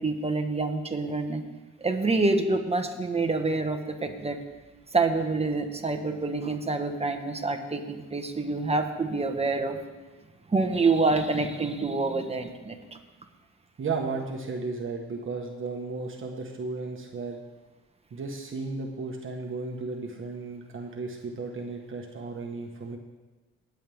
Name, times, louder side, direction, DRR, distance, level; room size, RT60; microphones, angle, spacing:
voice 1, 0.0-1.4 1.8-4.4 4.9-9.8 10.5-12.8, right 3 dB, 20° right, 5 dB, 1.5 m, -27 dB
voice 2, 13.8-17.4 18.1-23.0, right 4 dB, 45° right, 1 dB, 1.5 m, -34 dB
19.0 x 7.8 x 3.6 m, 1.2 s
cardioid pair, 90°, 30 cm